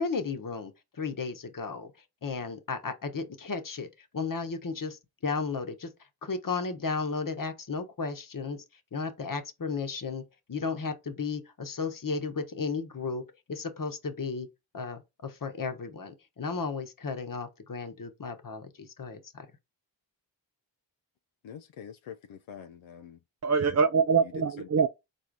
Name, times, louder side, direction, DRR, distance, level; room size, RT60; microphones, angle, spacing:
voice 1, 0.0-1.9 2.2-3.9 4.1-5.9 6.2-8.6 8.9-10.2 10.5-13.2 13.5-14.5 14.7-19.5, left 4 dB, 45° left, 1.1 m, -34 dB
voice 2, 21.4-23.2 24.2-24.9, left 8 dB, 85° left, 0.6 m, -45 dB
voice 3, 23.4-24.9, right 5 dB, 35° right, 0.5 m, -24 dB
4.1 x 2.7 x 4.6 m
cardioid pair, 40°, 46 cm